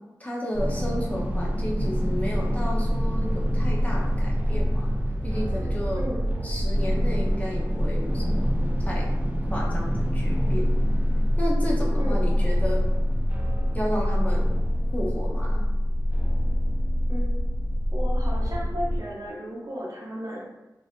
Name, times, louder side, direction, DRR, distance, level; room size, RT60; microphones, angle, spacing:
voice 1, 0.2-4.9 5.2-6.1 6.4-8.5 8.8-9.1 9.5-10.7 11.4-12.8 13.7-14.5 14.9-15.6, equal, 20° left, -4 dB, 0.7 m, -32 dB
sound 1, 0.5-19.0, equal, 20° right, 0.3 m, -25 dB
voice 2, 6.0-6.4 12.0-12.4 17.1-17.5 17.9-20.5, equal, 50° right, -3 dB, 0.7 m, -34 dB
3.0 x 2.6 x 2.4 m, 1.0 s
wide cardioid pair, 85°, 7 cm